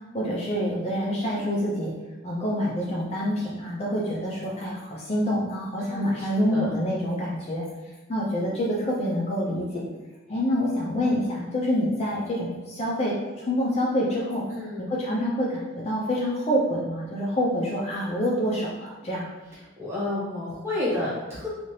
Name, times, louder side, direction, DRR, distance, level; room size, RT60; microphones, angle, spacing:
voice 1, 0.1-1.9 2.2-7.7 8.1-9.9 10.3-14.4 14.8-19.3, equal, 35° left, -4 dB, 0.4 m, -27 dB
voice 2, 5.8-6.8 14.5-15.0 19.8-21.5, left 2 dB, 15° right, -8 dB, 1.1 m, -31 dB
2.7 x 2.4 x 3.1 m, 1.2 s
head